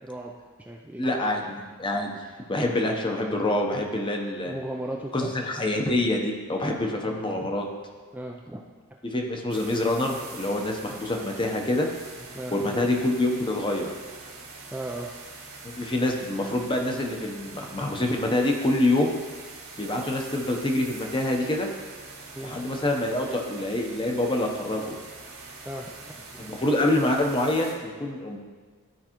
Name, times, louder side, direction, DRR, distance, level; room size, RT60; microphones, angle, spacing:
voice 1, 0.0-1.4 4.4-5.3 8.1-8.6 12.3-12.8 14.7-15.1 22.4-22.7 25.7-26.5, right 1 dB, 5° right, -1 dB, 0.3 m, -37 dB
voice 2, 1.0-2.1 2.5-4.5 5.1-7.7 9.0-11.9 12.5-13.9 15.6-19.2 19.8-21.7 22.4-25.0 26.4-28.4, left 1 dB, 20° left, 2 dB, 0.7 m, -26 dB
sound 1, 9.5-27.7, right 3 dB, 70° right, 1.7 m, -44 dB
12.0 x 4.6 x 3.0 m, 1.5 s
head